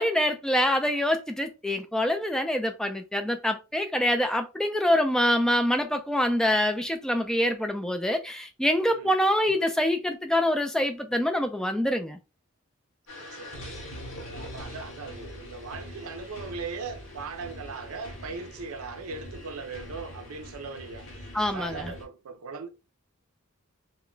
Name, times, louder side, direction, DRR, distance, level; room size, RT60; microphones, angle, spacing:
voice 1, 0.0-12.2 21.3-21.9, left 1 dB, 5° left, 0.3 m, -25 dB
sound 1, 13.1-22.1, left 1 dB, 65° left, 0.9 m, -43 dB
voice 2, 13.2-13.7 14.2-22.7, right 4 dB, 85° right, 0.5 m, -39 dB
2.2 x 2.1 x 3.7 m
head